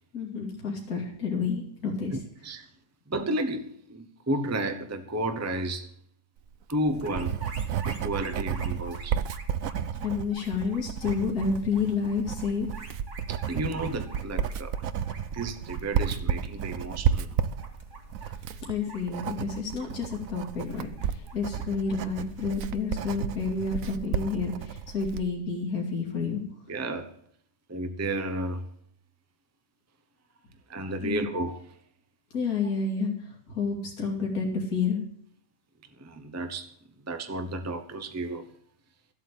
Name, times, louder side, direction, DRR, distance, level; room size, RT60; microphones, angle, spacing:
voice 1, 0.1-2.2 10.0-12.7 18.5-26.4 31.0-31.2 32.3-35.0, left 5 dB, 70° left, 2.9 m, -30 dB
voice 2, 2.1-2.6 3.1-5.9 6.7-7.3 7.9-9.2 13.3-14.7 15.3-17.4 26.7-27.1 27.7-28.7 30.7-31.6 36.0-36.7 37.1-38.5, right 1 dB, 10° right, 0.8 m, -32 dB
Writing, 6.5-25.3, right 8 dB, 65° right, 1.1 m, -32 dB
sound 1, 6.9-23.7, right 3 dB, 50° right, 2.3 m, -48 dB
13.5 x 8.5 x 8.5 m
omnidirectional pair, 1.7 m